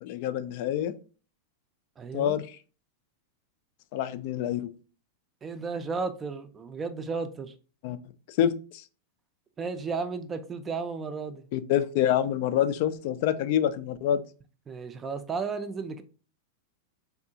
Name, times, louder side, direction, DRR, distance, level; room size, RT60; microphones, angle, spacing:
voice 1, 0.0-0.9 2.1-2.5 3.9-4.7 7.8-8.0 8.3-8.8 11.5-14.2, left 10 dB, 55° left, 0.3 m, -26 dB
voice 2, 2.0-2.4 5.4-7.5 9.6-11.5 14.7-16.0, right 4 dB, 20° right, 0.4 m, -34 dB
3.6 x 2.4 x 2.7 m
hypercardioid pair, 130°, 0 cm